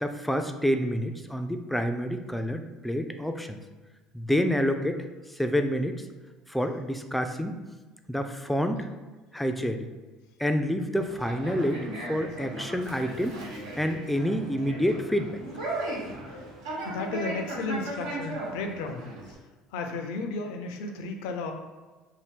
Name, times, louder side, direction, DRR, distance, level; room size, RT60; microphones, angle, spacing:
voice 1, 0.0-3.6 4.1-5.0 5.3-6.0 6.5-7.6 8.1-8.9 9.3-9.9 10.4-13.4 13.8-15.3, equal, 5° left, 6 dB, 0.3 m, -28 dB
Conversation, 11.0-19.3, right 2 dB, 85° right, 0.7 m, -37 dB
voice 2, 16.8-19.4 19.7-21.5, left 3 dB, 75° left, 5 dB, 0.4 m, -34 dB
2.7 x 2.0 x 3.5 m, 1.3 s
hypercardioid pair, 70°, 2 cm